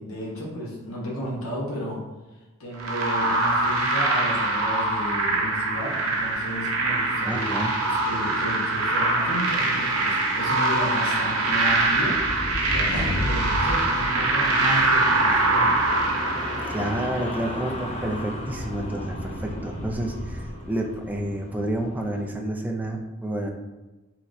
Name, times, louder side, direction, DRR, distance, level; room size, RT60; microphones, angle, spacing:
voice 1, 0.0-2.1 2.6-15.7, equal, 80° left, -4 dB, 1.2 m, -33 dB
sound 1, 2.8-22.3, left 1 dB, 30° left, 0.7 m, -37 dB
sound 2, 2.8-17.2, right 2 dB, 80° right, 0.7 m, -23 dB
voice 2, 7.3-7.7 16.7-23.5, right 1 dB, 10° right, 1 dB, 0.4 m, -29 dB
sound 3, 11.7-15.0, left 1 dB, 65° left, 1.5 m, -31 dB
5.6 x 3.1 x 2.6 m, 1.1 s
head